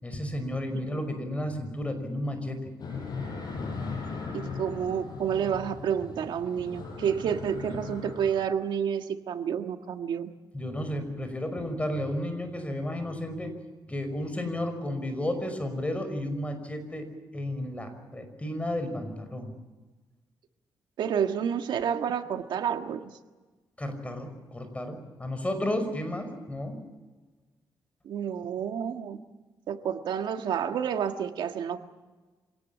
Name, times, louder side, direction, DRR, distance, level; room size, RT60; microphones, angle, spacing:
voice 1, 0.0-2.7 10.5-13.5 13.9-17.1 17.3-19.5 23.8-26.8, left 1 dB, 15° left, 7 dB, 5.7 m, -32 dB
sound 1, 2.8-8.3, left 4 dB, 60° left, 7.5 m, -38 dB
voice 2, 4.3-10.3 21.0-23.1 28.0-29.2 29.7-31.8, right 8 dB, 85° right, 6 dB, 1.7 m, -29 dB
26.5 x 18.5 x 8.6 m, 1.3 s
cardioid pair, 90°, 8 cm